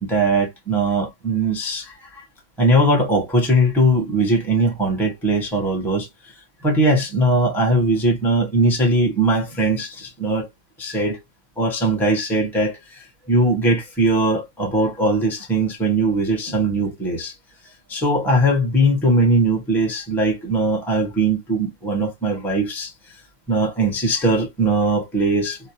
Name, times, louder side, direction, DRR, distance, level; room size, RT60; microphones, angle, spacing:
voice 1, 0.0-2.2 2.6-6.3 6.6-10.5 10.8-11.2 11.6-17.3 17.9-23.2 23.5-25.6, right 1 dB, ahead, 0.8 m, -20 dB
2.8 x 2.0 x 2.9 m
omnidirectional pair, 1.4 m